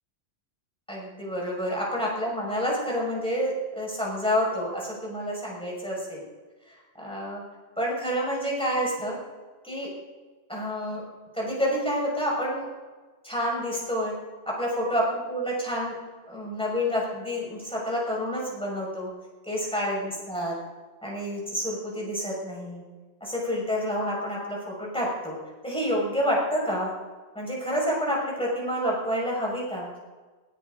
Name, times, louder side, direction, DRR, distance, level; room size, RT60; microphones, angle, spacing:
voice 1, 0.9-6.2 7.0-7.4 7.8-9.2 9.6-9.9 10.5-11.0 11.3-12.7 13.2-14.1 14.5-15.9 16.3-19.1 19.5-20.6 21.0-22.8 23.2-25.4 25.6-26.9 27.3-29.9, equal, 5° left, -4 dB, 6.2 m, -28 dB
22.0 x 13.0 x 4.1 m, 1.3 s
omnidirectional pair, 1.1 m